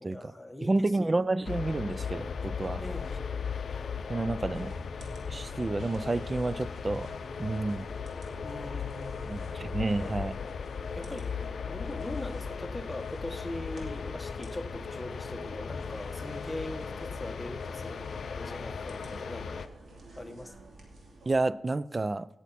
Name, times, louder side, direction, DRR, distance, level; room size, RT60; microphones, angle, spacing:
voice 1, 0.0-1.3 2.8-3.3 8.4-9.2 10.0-10.1 10.9-19.7 20.2-20.6, left 1 dB, 10° left, 1.4 m, -41 dB
voice 2, 0.6-2.8 4.1-4.7 5.3-7.1 7.4-7.8 9.3-10.3 21.3-22.3, right 2 dB, 35° right, 0.4 m, -30 dB
sound 1, 1.4-19.7, left 6 dB, 75° left, 0.5 m, -37 dB
sound 2, 4.5-21.4, right 2 dB, 75° right, 2.7 m, -51 dB
17.5 x 7.1 x 4.2 m
cardioid pair, 60°, 0 cm